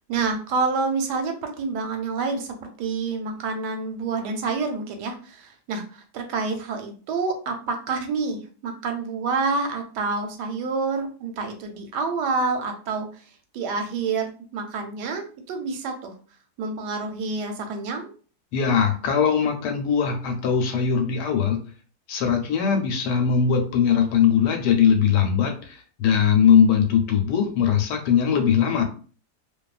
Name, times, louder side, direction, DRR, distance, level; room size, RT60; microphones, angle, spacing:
voice 1, 0.1-13.1 13.5-16.1 16.6-18.1, right 4 dB, 90° right, 5 dB, 1.2 m, -28 dB
voice 2, 18.5-21.6 22.1-28.8, left 7 dB, 85° left, 4 dB, 1.2 m, -20 dB
2.7 x 2.3 x 2.3 m, 0.39 s
omnidirectional pair, 1.8 m